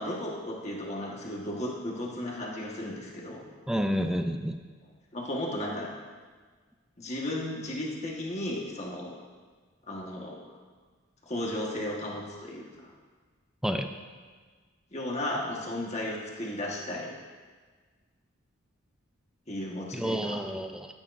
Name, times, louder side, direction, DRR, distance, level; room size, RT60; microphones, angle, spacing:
voice 1, 0.0-3.4 5.1-5.9 7.0-9.1 9.9-10.5 11.2-12.9 14.9-17.1 19.5-20.4, left 1 dB, 35° left, -2 dB, 1.4 m, -34 dB
voice 2, 3.7-4.6 13.6-13.9 19.9-20.9, equal, 5° right, 6 dB, 0.4 m, -29 dB
13.5 x 8.7 x 2.6 m, 1.5 s
head